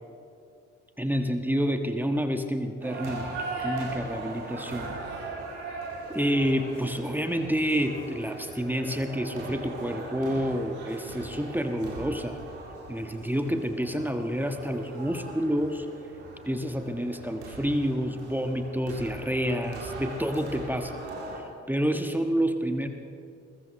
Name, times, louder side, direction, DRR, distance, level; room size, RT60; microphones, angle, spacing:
voice 1, 1.0-4.9 6.1-12.4 12.9-15.9 16.5-21.0 21.7-22.9, equal, 5° right, 6 dB, 1.4 m, -28 dB
sound 1, 2.8-21.4, right 3 dB, 85° right, 2.3 m, -39 dB
21.0 x 20.0 x 3.2 m, 2.5 s
figure-of-eight pair, 40°, 33 cm